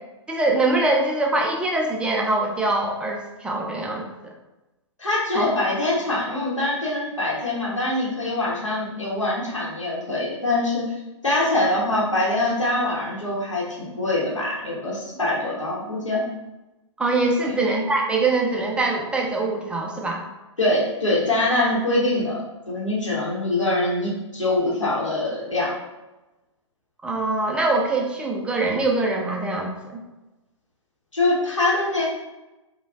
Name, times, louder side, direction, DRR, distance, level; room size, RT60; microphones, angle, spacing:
voice 1, 0.3-4.3 5.3-5.5 17.0-20.2 27.0-30.0, right 2 dB, 5° right, 0 dB, 0.4 m, -23 dB
voice 2, 5.0-10.9 11.2-16.2 17.5-17.6 20.6-25.7 31.1-32.1, left 2 dB, 85° left, -5 dB, 1.0 m, -24 dB
4.9 x 2.2 x 2.4 m, 1.0 s
figure-of-eight pair, 110°, 16 cm